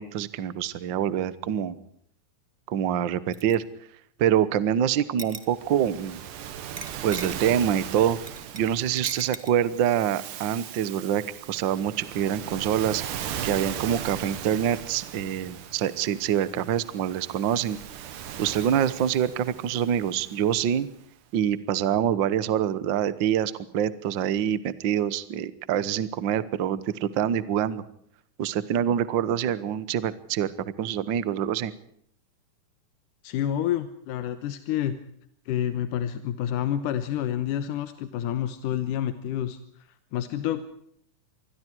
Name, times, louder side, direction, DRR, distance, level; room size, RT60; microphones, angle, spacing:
voice 1, 0.0-1.8 2.7-3.6 4.2-6.2 7.0-8.2 8.5-13.0 13.4-17.8 18.4-20.9 21.3-27.8 28.4-31.7, right 9 dB, 60° right, 16 dB, 1.2 m, -25 dB
sound 1, 3.3-3.5 5.2-5.7 6.8-7.5 8.3-8.7 9.0-9.5, right 3 dB, 25° right, 1.0 m, -37 dB
Waves surf, 5.5-21.0, right 9 dB, 90° right, 3.1 m, -38 dB
voice 2, 33.2-35.0 35.5-40.6, left 11 dB, 85° left, 11 dB, 2.6 m, -29 dB
27.5 x 21.0 x 4.6 m, 0.67 s
omnidirectional pair, 3.6 m